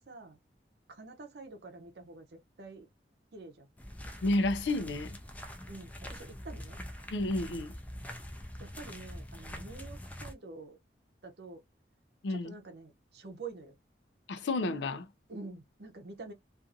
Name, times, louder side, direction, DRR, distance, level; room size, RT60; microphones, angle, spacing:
voice 1, 0.1-0.4 0.9-2.9 3.3-3.7 5.7-6.8 8.6-10.8 11.2-11.6 12.3-13.7 15.3-16.3, right 3 dB, 65° right, 0.7 m, -47 dB
sound 1, 3.8-10.3, left 1 dB, 10° left, 0.4 m, -44 dB
voice 2, 4.2-5.2 7.1-7.7 12.2-12.5 14.3-15.1, left 2 dB, 80° left, 0.5 m, -31 dB
2.5 x 2.5 x 2.6 m
head